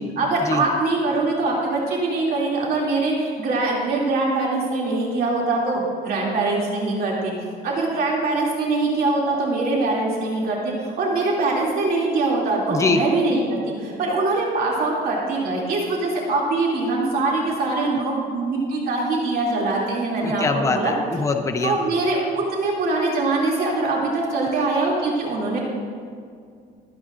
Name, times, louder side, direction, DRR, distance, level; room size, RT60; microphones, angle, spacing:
voice 1, 0.2-7.3 7.6-20.9 21.6-25.6, right 3 dB, 60° right, -3 dB, 2.7 m, -23 dB
voice 2, 12.7-13.0 20.2-21.8, left 4 dB, 20° left, 4 dB, 0.8 m, -23 dB
25.0 x 8.6 x 2.6 m, 2.2 s
cardioid pair, 110°, 17 cm